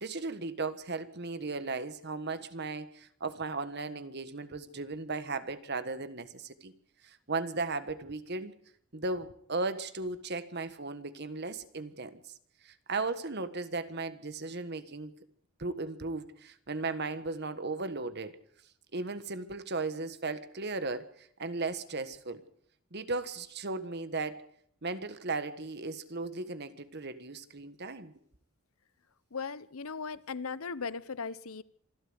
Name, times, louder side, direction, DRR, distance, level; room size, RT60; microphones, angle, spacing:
voice 1, 0.0-6.7 7.0-8.5 8.9-12.3 12.6-15.1 15.6-18.3 18.9-22.4 22.9-24.4 24.8-28.1, right 3 dB, 50° right, 11 dB, 1.5 m, -36 dB
voice 2, 29.3-31.6, left 5 dB, 90° left, 17 dB, 0.9 m, -38 dB
26.0 x 12.5 x 8.1 m, 0.66 s
head